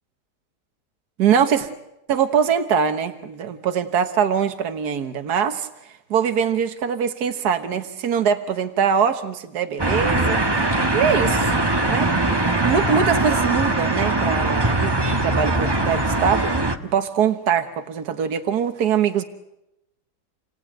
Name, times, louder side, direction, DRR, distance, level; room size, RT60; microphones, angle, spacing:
voice 1, 1.2-1.7 2.1-5.7 6.1-10.4 10.9-11.6 11.9-12.2 12.6-19.2, right 7 dB, 70° right, 7 dB, 1.8 m, -22 dB
sound 1, 9.8-16.8, right 2 dB, 15° right, 1.2 m, -21 dB
29.0 x 18.5 x 9.1 m, 0.87 s
omnidirectional pair, 1.8 m